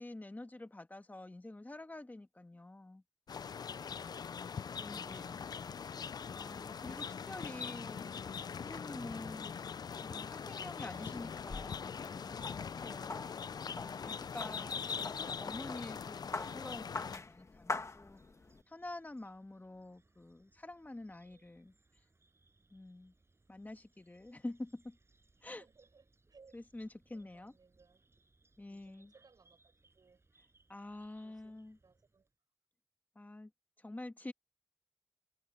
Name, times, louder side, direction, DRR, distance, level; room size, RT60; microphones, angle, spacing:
voice 1, 0.0-3.0 4.8-5.5 6.3-8.2 8.6-9.6 9.9-13.2 13.7-18.2 18.7-21.7 22.7-23.1 23.5-25.0 25.4-25.6 26.5-27.5 28.6-29.1 30.7-31.8 33.1-33.5 33.8-34.3, left 2 dB, 25° left, 1.5 m, -47 dB
sound 1, 3.3-17.2, left 6 dB, 85° left, 0.4 m, -42 dB
sound 2, 11.1-18.6, left 3 dB, 50° left, 1.5 m, -45 dB
voice 2, 12.8-13.5 21.2-21.5 25.6-28.0 28.7-30.2 31.2-32.3, right 4 dB, 80° right, 6.3 m, -66 dB
sound 3, 17.5-32.3, right 3 dB, 40° right, 5.8 m, -72 dB
wide cardioid pair, 100°, 7 cm